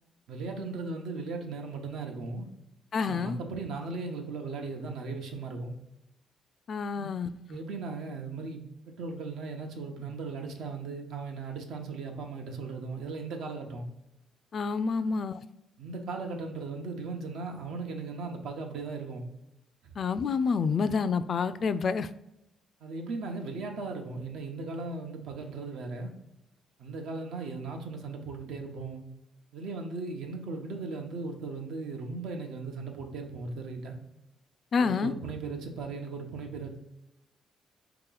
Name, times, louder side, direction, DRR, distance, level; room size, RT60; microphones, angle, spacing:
voice 1, 0.3-2.5 3.0-5.8 6.9-7.1 7.5-13.9 15.0-15.1 15.8-19.3 19.8-19.9 22.8-26.1 26.8-29.0 29.5-34.0 34.8-36.8, right 3 dB, 80° right, 0.8 m, -37 dB
voice 2, 2.9-3.4 6.7-7.3 14.5-15.4 20.0-22.1 34.7-35.1, left 5 dB, 50° left, 0.3 m, -28 dB
4.7 x 2.9 x 3.8 m
cardioid pair, 90°, 0 cm